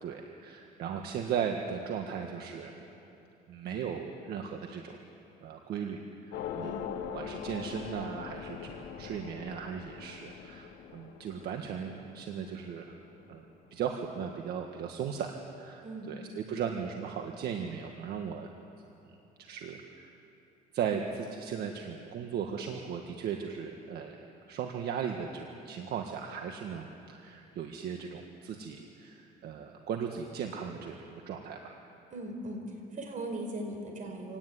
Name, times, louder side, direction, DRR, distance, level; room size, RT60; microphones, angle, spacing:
voice 1, 0.0-2.7 3.5-5.0 5.4-6.7 7.1-13.0 13.3-13.4 13.7-18.5 19.4-20.1 20.7-31.8, right 7 dB, 70° right, 3 dB, 1.7 m, -37 dB
sound 1, 6.3-13.1, left 8 dB, 85° left, 1.4 m, -42 dB
voice 2, 6.5-6.9 15.8-16.2 32.1-34.4, right 1 dB, 50° right, 3 dB, 5.1 m, -39 dB
26.0 x 18.0 x 9.6 m, 3.0 s
cardioid pair, 110°, 17 cm